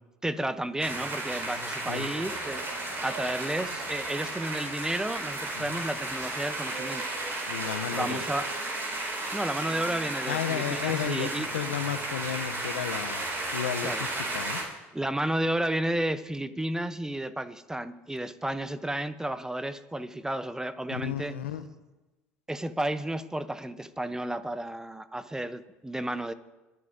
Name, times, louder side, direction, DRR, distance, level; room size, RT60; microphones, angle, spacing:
voice 1, 0.2-2.6 3.0-7.0 7.9-8.5 9.3-11.5 13.8-14.0 14.9-21.3 22.5-26.3, right 1 dB, 10° right, 13 dB, 0.8 m, -32 dB
sound 1, 0.8-14.6, right 2 dB, 40° right, 4.9 m, -34 dB
sound 2, 2.0-13.1, right 4 dB, 90° right, 2.0 m, -48 dB
voice 2, 7.5-8.2 10.3-13.2 13.5-14.6 20.9-21.7, left 10 dB, 85° left, 10 dB, 0.7 m, -33 dB
21.5 x 10.5 x 2.7 m, 1.1 s
hypercardioid pair, 65°, 6 cm